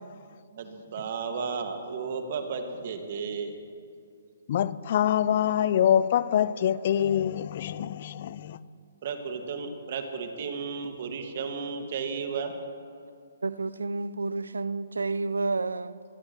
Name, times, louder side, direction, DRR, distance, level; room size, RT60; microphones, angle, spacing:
voice 1, 0.5-3.5 9.0-12.5, right 5 dB, 50° right, 1.8 m, -33 dB
voice 2, 4.5-8.6, left 10 dB, 50° left, 0.5 m, -25 dB
voice 3, 13.4-16.0, right 3 dB, 80° right, 0.6 m, -30 dB
22.5 x 19.0 x 3.1 m
figure-of-eight pair, 130°, 0 cm